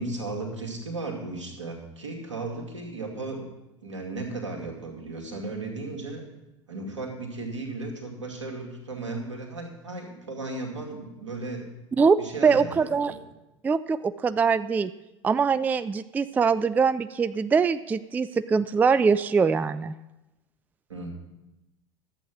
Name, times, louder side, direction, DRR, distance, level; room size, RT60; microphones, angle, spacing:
voice 1, 0.0-3.5 3.8-6.2 6.7-11.7 12.2-13.2 20.9-21.1, right 2 dB, 85° right, 1 dB, 2.2 m, -35 dB
voice 2, 12.4-13.1 13.6-14.9 15.2-19.9, right 5 dB, 10° right, 14 dB, 0.3 m, -23 dB
11.5 x 8.1 x 6.1 m, 0.97 s
figure-of-eight pair, 85°, 15 cm